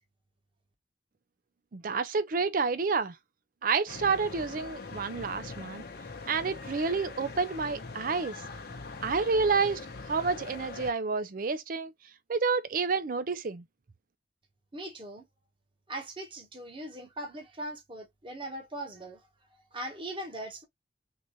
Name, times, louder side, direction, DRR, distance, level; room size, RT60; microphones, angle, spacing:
voice 1, 1.7-3.2 3.6-5.8 6.3-8.4 9.0-9.8 10.1-11.9 12.3-13.6, right 4 dB, 50° right, 0.5 m, -29 dB
sound 1, 3.9-10.9, left 3 dB, 55° left, 0.8 m, -42 dB
voice 2, 14.7-15.2 15.9-19.2 19.7-20.6, right 1 dB, 30° right, 1.2 m, -40 dB
3.8 x 2.6 x 3.1 m
head